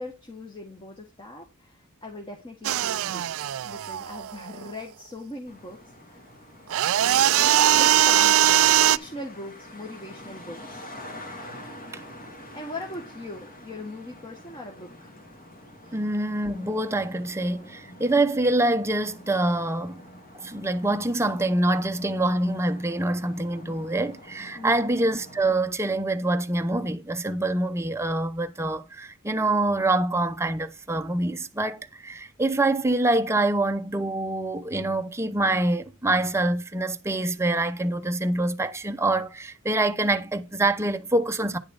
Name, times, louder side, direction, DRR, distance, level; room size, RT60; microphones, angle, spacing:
voice 1, 0.0-5.8 6.1-6.3 7.0-10.8 12.5-15.1 15.8-16.0 24.5-24.8, left 1 dB, 20° left, 1.5 m, -40 dB
sound 1, 2.6-4.7 6.7-9.0, right 12 dB, 65° right, 0.4 m, -20 dB
Traffic noise roadway noise, 5.5-25.4, left 1 dB, 40° left, 2.3 m, -46 dB
voice 2, 15.9-20.0 20.4-41.6, right 2 dB, 10° right, 0.7 m, -25 dB
9.9 x 6.6 x 3.9 m
head